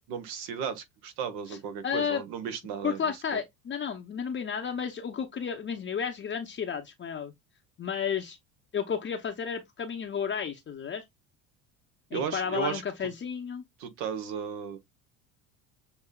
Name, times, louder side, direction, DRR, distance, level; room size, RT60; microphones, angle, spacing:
voice 1, 0.1-3.0 3.3-3.4 12.1-12.8 13.8-14.8, right 7 dB, 65° right, 1.1 m, -34 dB
voice 2, 1.8-2.2 2.8-7.3 7.8-8.4 8.7-11.0 12.1-13.6, left 7 dB, 25° left, 0.7 m, -32 dB
6.9 x 2.7 x 2.2 m
hypercardioid pair, 80°, 42 cm